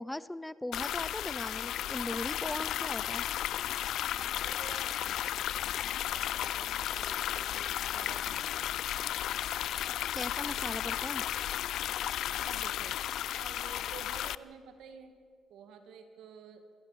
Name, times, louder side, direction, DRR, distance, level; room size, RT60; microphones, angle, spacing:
voice 1, 0.0-3.3 10.1-11.2, left 1 dB, 10° left, 18 dB, 0.5 m, -39 dB
sound 1, 0.7-14.3, left 12 dB, 80° left, 0.4 m, -34 dB
voice 2, 4.1-8.7 12.3-13.0 13.3-15.2 15.5-16.6, right 6 dB, 80° right, 8 dB, 2.2 m, -51 dB
22.0 x 15.0 x 8.4 m, 2.2 s
cardioid pair, 90°, 0 cm